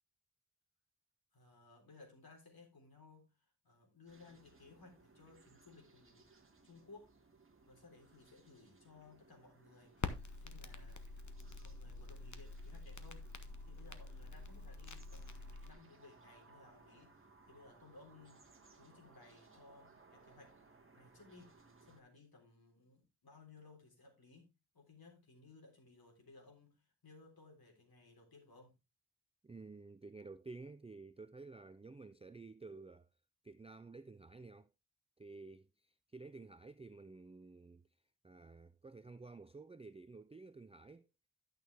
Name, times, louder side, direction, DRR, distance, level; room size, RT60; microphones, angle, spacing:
voice 1, 1.3-3.3 3.6-6.3 6.6-7.1 7.7-13.4 13.6-18.5 18.8-20.5 21.0-21.5 21.8-24.5 24.7-28.7, left 3 dB, 65° left, 3.8 m, -60 dB
sound 1, 4.1-22.0, right 3 dB, 35° right, 1.6 m, -65 dB
Crackle, 10.0-15.7, left 4 dB, 50° left, 1.0 m, -46 dB
voice 2, 29.4-33.1 33.4-34.7 35.2-37.9 38.2-41.1, right 3 dB, 15° right, 0.4 m, -52 dB
11.5 x 6.4 x 3.4 m
wide cardioid pair, 110°, 39 cm